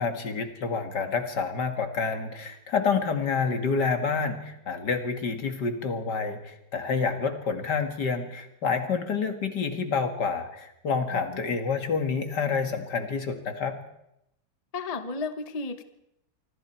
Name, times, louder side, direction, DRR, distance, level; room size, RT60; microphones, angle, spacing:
voice 1, 0.0-13.8, left 5 dB, 70° left, 6 dB, 2.5 m, -28 dB
voice 2, 11.1-11.6 14.7-15.8, left 4 dB, 25° left, 9 dB, 1.1 m, -34 dB
26.0 x 25.0 x 4.5 m, 0.81 s
omnidirectional pair, 1.9 m